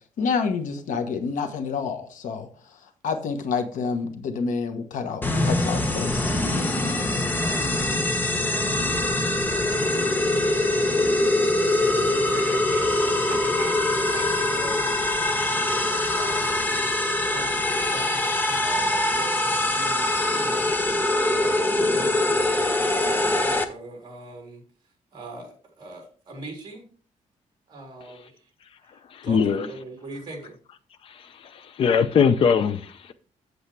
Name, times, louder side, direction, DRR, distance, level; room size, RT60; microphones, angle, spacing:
voice 1, 0.2-2.5 3.0-6.4, left 5 dB, 75° left, 1.2 m, -28 dB
sound 1, 5.2-23.6, left 2 dB, 15° left, 0.9 m, -23 dB
voice 2, 11.6-14.9 15.6-16.8 17.3-20.7 21.4-24.6 25.1-26.8 27.7-28.5 29.2-30.6, right 2 dB, 35° right, 3.6 m, -40 dB
voice 3, 29.1-29.7 31.5-33.1, left 6 dB, 45° left, 0.5 m, -21 dB
8.1 x 8.0 x 3.3 m
wide cardioid pair, 170°, 13 cm